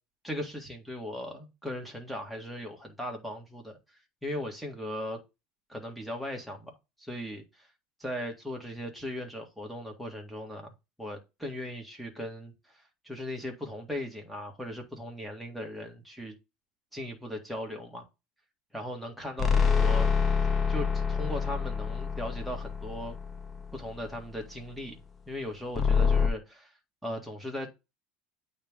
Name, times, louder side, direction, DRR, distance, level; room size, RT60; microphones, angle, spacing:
voice 1, 0.2-3.8 4.2-5.2 5.7-7.7 8.0-16.3 16.9-18.1 18.7-20.1 20.7-23.2 23.7-25.0 25.3-26.7 27.0-27.7, left 1 dB, ahead, 1.7 m, -38 dB
sound 1, 19.4-23.9 25.8-26.3, left 6 dB, 25° left, 0.7 m, -26 dB
8.8 x 3.2 x 3.6 m
supercardioid pair, 145°, 0 cm